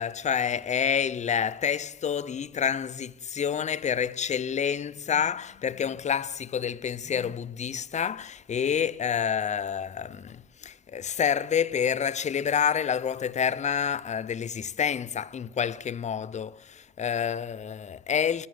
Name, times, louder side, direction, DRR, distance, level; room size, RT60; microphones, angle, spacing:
voice 1, 0.0-18.5, left 7 dB, 35° left, 0.5 m, -28 dB
10.0 x 9.7 x 9.6 m
cardioid pair, 90°, 20 cm